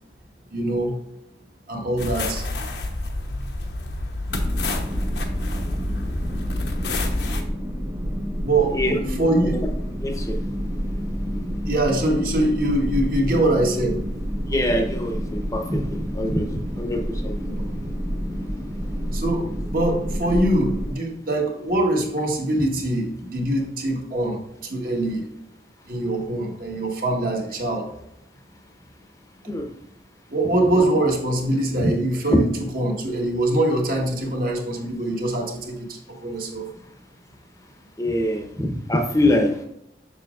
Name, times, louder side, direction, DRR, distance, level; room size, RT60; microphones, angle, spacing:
voice 1, 0.5-1.0 1.7-2.4 3.3-3.5 8.4-8.8 9.1-9.6 11.7-14.0 17.4-17.6 19.1-25.3 25.9-27.9 30.3-36.7, right 1 dB, 50° right, 0 dB, 1.4 m, -23 dB
sound 1, 2.0-7.4, left 2 dB, 70° left, 0.9 m, -28 dB
sound 2, 4.3-20.9, equal, 15° right, 1.1 m, -29 dB
voice 2, 8.7-9.7 10.0-10.4 14.5-17.4 29.5-29.7 31.8-31.9 38.0-39.6, left 1 dB, 20° left, 4 dB, 0.8 m, -24 dB
6.9 x 6.1 x 2.4 m, 0.79 s
head